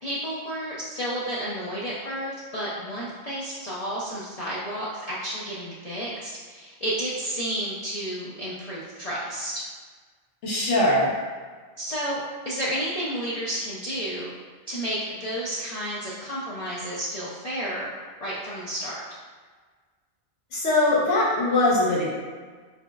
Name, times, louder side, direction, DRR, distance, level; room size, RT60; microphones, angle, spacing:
voice 1, 0.0-9.6 11.8-12.2 12.4-14.3 14.7-17.9 18.2-19.0, equal, 50° left, -8 dB, 0.5 m, -31 dB
voice 2, 10.4-11.1 20.5-22.1, left 2 dB, 80° left, -5 dB, 1.2 m, -21 dB
4.1 x 3.0 x 2.3 m, 1.5 s
omnidirectional pair, 1.2 m